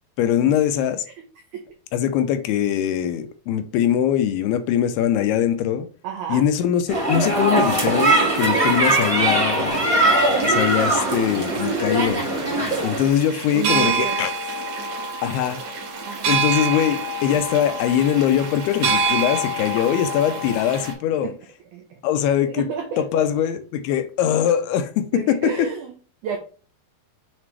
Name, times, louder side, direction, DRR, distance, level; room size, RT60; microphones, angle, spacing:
voice 1, 0.2-1.0 1.9-5.9 6.3-9.9 10.4-12.3 12.8-14.3 15.2-15.6 16.3-21.3 22.0-22.7 23.0-25.7, left 10 dB, 80° left, 2.5 m, -22 dB
voice 2, 6.0-6.4 12.7-12.9 13.5-14.3 16.1-16.4 21.2-21.4 21.7-22.0 22.5-23.3 25.1-25.9 26.2-26.4, right 6 dB, 90° right, 1.7 m, -31 dB
sound 1, 6.9-13.1, right 2 dB, 15° right, 1.3 m, -20 dB
sound 2, 9.7-20.9, right 4 dB, 60° right, 3.4 m, -27 dB
7.4 x 4.1 x 3.2 m
omnidirectional pair, 4.7 m